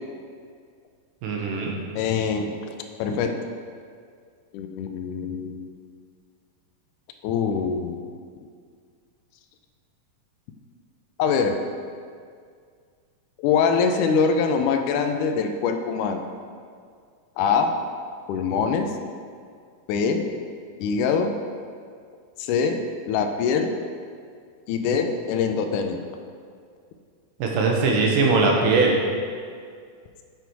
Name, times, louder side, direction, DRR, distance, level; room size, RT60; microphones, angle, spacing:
voice 1, 1.2-1.7 27.4-29.0, right 3 dB, 75° right, 0 dB, 2.6 m, -20 dB
voice 2, 2.0-2.5 3.0-3.4 4.5-5.7 7.2-8.0 11.2-11.6 13.4-16.2 17.4-17.7 18.3-18.9 19.9-20.3 20.8-21.3 22.4-22.8 23.1-23.7 24.7-26.0, left 5 dB, 85° left, 5 dB, 1.8 m, -23 dB
6.9 x 6.1 x 4.7 m, 2.1 s
omnidirectional pair, 4.2 m